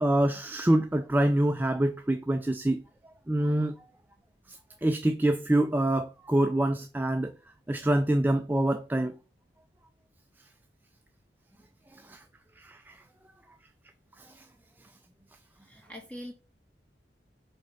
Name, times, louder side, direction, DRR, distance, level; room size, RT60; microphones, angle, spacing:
voice 1, 0.0-2.8 3.3-3.7 4.5-7.3 7.7-9.1 11.9-12.2 12.6-12.9 14.2-14.4, right 1 dB, 10° right, 0.3 m, -26 dB
voice 2, 15.6-16.3, equal, 5° left, 1.6 m, -43 dB
5.2 x 4.1 x 5.6 m
head